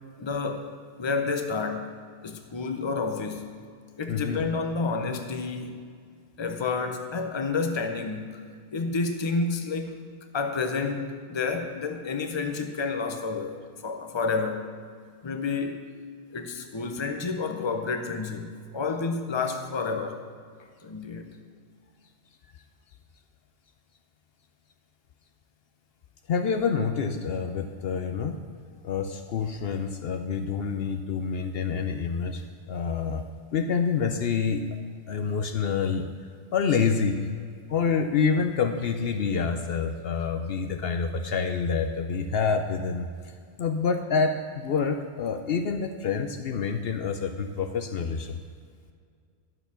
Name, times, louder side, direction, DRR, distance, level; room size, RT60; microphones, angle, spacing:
voice 1, 0.2-0.7 1.0-1.9 2.2-3.5 4.0-5.8 6.4-8.4 8.7-10.0 10.3-14.7 15.2-15.8 16.3-20.2 20.8-21.3, left 4 dB, 30° left, 5 dB, 0.8 m, -30 dB
voice 2, 4.1-4.4 26.3-28.4 28.8-33.2 33.5-34.6 35.1-36.1 36.5-37.2 37.7-43.1 43.6-48.4, left 5 dB, 65° left, 6 dB, 0.8 m, -27 dB
11.0 x 6.8 x 5.8 m, 2.1 s
omnidirectional pair, 1.1 m